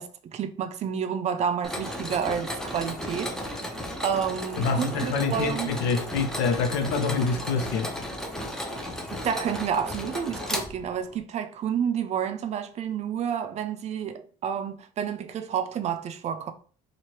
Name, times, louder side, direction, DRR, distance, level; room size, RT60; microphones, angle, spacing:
voice 1, 0.0-3.7 4.0-5.7 8.7-16.5, right 8 dB, 40° right, 0.5 m, -30 dB
Mechanisms, 1.6-11.2, left 1 dB, 5° left, 0.6 m, -34 dB
voice 2, 4.6-7.9, left 4 dB, 75° left, 0.8 m, -26 dB
4.3 x 2.5 x 3.1 m
cardioid pair, 120°, 17 cm